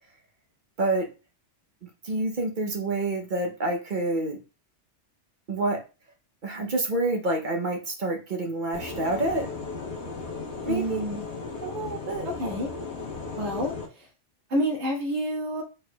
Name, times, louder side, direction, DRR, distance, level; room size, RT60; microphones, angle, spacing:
voice 1, 1.8-4.4 5.5-5.8 6.4-9.5 10.7-11.0 11.6-12.3, right 2 dB, 50° right, 3 dB, 0.8 m, -28 dB
sound 1, 8.7-13.9, left 4 dB, 65° left, 1.3 m, -36 dB
voice 2, 10.7-11.2 12.2-12.7 13.4-14.1 14.5-15.6, equal, 70° right, 0 dB, 1.6 m, -28 dB
4.6 x 4.4 x 2.2 m, 0.31 s
omnidirectional pair, 1.2 m